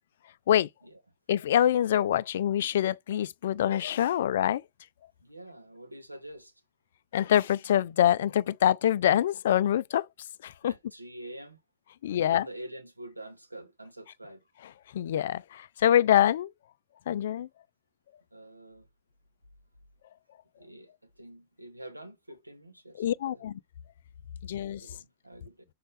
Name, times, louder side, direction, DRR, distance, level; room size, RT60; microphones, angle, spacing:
voice 1, 1.3-4.6 7.1-10.1 10.4-10.7 12.0-12.5 14.9-16.5 17.1-17.5 23.0-23.6 24.5-24.8, left 11 dB, 60° left, 0.3 m, -25 dB
voice 2, 5.2-6.5 10.6-11.6 12.2-14.4 18.3-18.9 20.6-23.4 24.8-25.6, right 1 dB, 85° right, 0.9 m, -46 dB
6.4 x 4.9 x 3.3 m
figure-of-eight pair, 90°, 0 cm